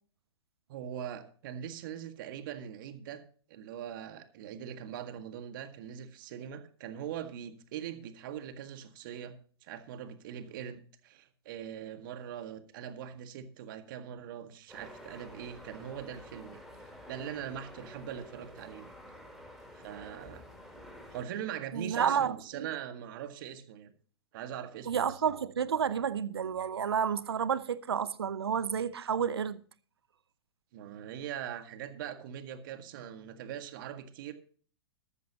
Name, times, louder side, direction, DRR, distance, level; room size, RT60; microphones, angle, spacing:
voice 1, 0.7-3.2 3.5-9.4 9.6-18.9 19.7-20.4 21.1-23.9 24.3-25.2 30.7-34.3, right 9 dB, 55° right, 1.8 m, -42 dB
sound 1, 14.7-21.2, equal, ahead, 6.0 m, -50 dB
voice 2, 21.7-22.7 24.9-29.6, right 7 dB, 75° right, 0.8 m, -30 dB
13.5 x 13.0 x 2.9 m
figure-of-eight pair, 105°, 13 cm